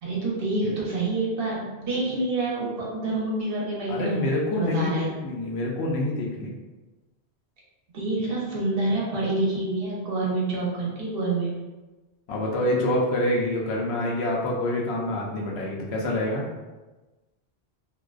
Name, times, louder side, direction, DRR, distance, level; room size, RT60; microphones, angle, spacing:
voice 1, 0.0-4.2 4.5-5.1 7.9-11.6, right 2 dB, 60° right, -5 dB, 0.9 m, -27 dB
voice 2, 3.9-6.5 12.3-16.4, left 1 dB, 75° left, -2 dB, 0.8 m, -26 dB
2.5 x 2.2 x 2.3 m, 1.2 s
omnidirectional pair, 1.1 m